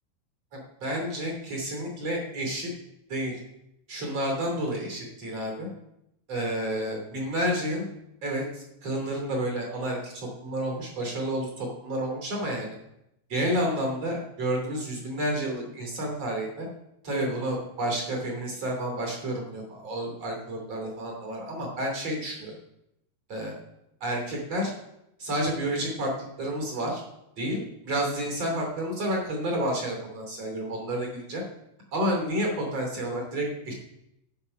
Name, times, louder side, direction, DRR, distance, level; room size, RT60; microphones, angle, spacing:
voice 1, 0.5-2.7 3.1-3.4 3.9-5.7 6.3-7.8 8.2-12.7 13.3-16.7 17.0-22.5 23.3-23.5 24.0-24.7 25.2-27.0 27.4-31.4 31.9-33.7, right 1 dB, 35° right, 1 dB, 3.5 m, -30 dB
12.5 x 8.4 x 5.8 m, 0.84 s
omnidirectional pair, 5.4 m